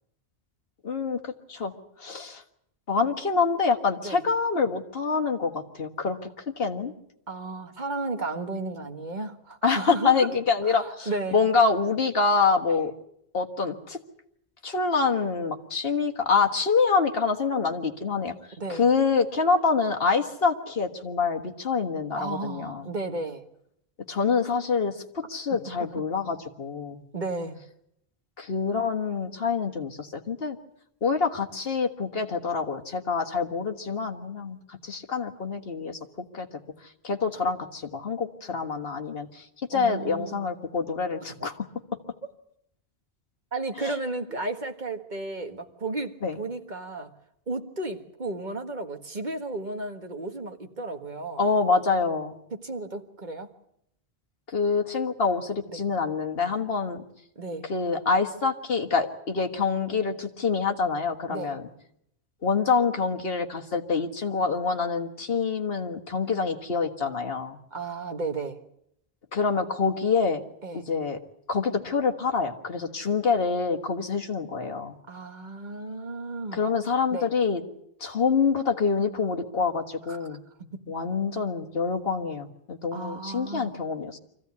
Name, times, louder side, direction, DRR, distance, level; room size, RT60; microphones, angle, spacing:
voice 1, 0.8-1.7 2.0-2.4 2.9-6.3 6.6-6.9 9.6-12.9 13.3-14.0 14.6-18.3 18.7-22.9 24.1-27.0 28.4-30.6 31.0-36.5 37.0-41.7 43.8-44.0 46.2-46.4 51.4-52.3 54.5-57.0 57.7-61.6 62.4-67.6 69.3-70.4 70.7-71.2 71.5-75.0 76.5-77.6 78.0-80.4 80.9-84.2, left 5 dB, 65° left, 5 dB, 1.8 m, -26 dB
voice 2, 7.3-10.3 10.6-11.4 18.6-18.9 22.2-23.4 25.5-25.6 27.1-27.6 39.7-40.5 41.4-41.5 43.5-47.1 47.5-51.4 52.5-53.5 55.7-55.8 57.4-57.7 61.3-61.6 67.7-68.6 70.6-70.8 75.1-76.7 77.1-77.3 80.1-80.2 80.7-80.8 82.9-83.8, right 2 dB, 45° right, 6 dB, 1.7 m, -33 dB
25.0 x 15.5 x 9.5 m, 0.77 s
omnidirectional pair, 1.1 m